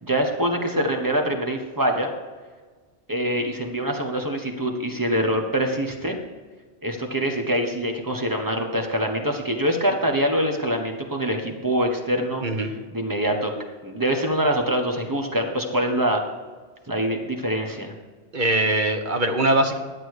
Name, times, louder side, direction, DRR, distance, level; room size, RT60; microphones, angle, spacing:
voice 1, 0.0-2.1 3.1-6.2 6.8-12.4 12.9-13.5 13.8-16.2 16.9-17.9, equal, 15° right, 3 dB, 1.2 m, -24 dB
voice 2, 12.4-12.7 18.3-19.8, right 1 dB, 45° right, 6 dB, 1.0 m, -22 dB
11.5 x 8.0 x 4.8 m, 1.4 s
omnidirectional pair, 1.2 m